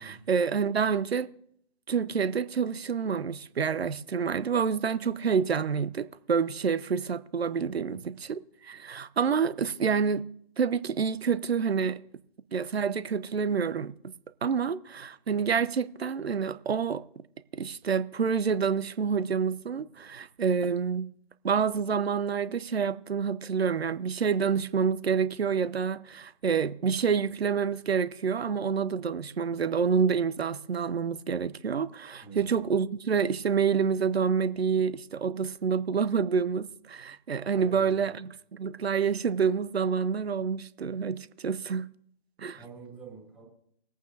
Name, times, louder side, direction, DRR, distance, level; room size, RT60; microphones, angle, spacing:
voice 1, 0.0-1.3 1.9-10.3 10.6-12.0 12.5-14.1 14.4-17.0 17.5-21.1 21.4-41.9 42.4-42.6, right 6 dB, 70° right, 0.7 m, -28 dB
voice 2, 7.7-8.0 32.2-32.5 37.5-38.1 42.6-43.4, right 5 dB, 5° right, 2.7 m, -47 dB
22.5 x 8.7 x 2.7 m
figure-of-eight pair, 135°, 32 cm